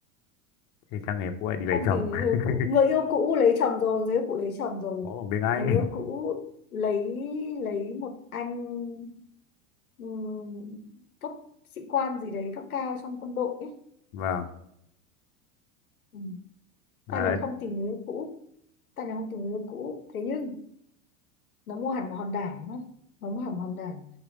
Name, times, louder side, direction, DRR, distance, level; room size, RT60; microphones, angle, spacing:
voice 1, 0.9-2.5 5.0-5.9 14.1-14.5 17.1-17.4, left 7 dB, 45° left, 7 dB, 0.8 m, -28 dB
voice 2, 1.7-5.1 5.5-6.5 6.7-9.2 10.0-10.9 11.2-11.4 11.8-13.7 16.1-16.4 17.1-18.4 19.0-20.6 21.7-22.9 23.2-24.0, left 5 dB, 90° left, 7 dB, 0.7 m, -29 dB
4.9 x 4.0 x 4.8 m, 0.73 s
hypercardioid pair, 85°, 42 cm